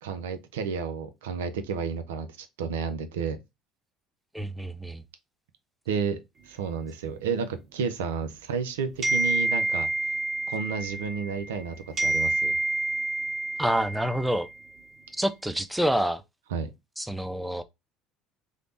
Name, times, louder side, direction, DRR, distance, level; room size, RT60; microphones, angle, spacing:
voice 1, 0.0-3.4 5.9-9.9 10.5-12.6 16.5-16.7, right 6 dB, 80° right, 0.3 m, -31 dB
voice 2, 4.3-5.0 13.6-14.5 15.2-16.2 17.0-17.6, right 1 dB, 5° right, 0.4 m, -27 dB
sound 1, 9.0-11.6 12.0-14.5, right 2 dB, 40° right, 1.5 m, -28 dB
3.2 x 2.0 x 2.6 m
hypercardioid pair, 65°, 0 cm